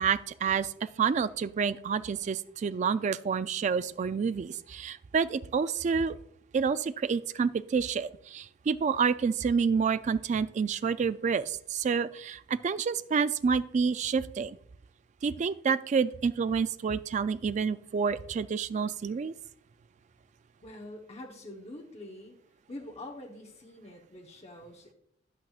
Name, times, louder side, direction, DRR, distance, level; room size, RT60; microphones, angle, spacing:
voice 1, 0.0-6.2 6.5-14.6 15.2-19.3, right 6 dB, 40° right, 14 dB, 0.3 m, -28 dB
voice 2, 20.6-22.4 22.7-24.9, left 1 dB, 35° left, 0 dB, 1.0 m, -45 dB
10.5 x 8.4 x 2.4 m, 0.70 s
head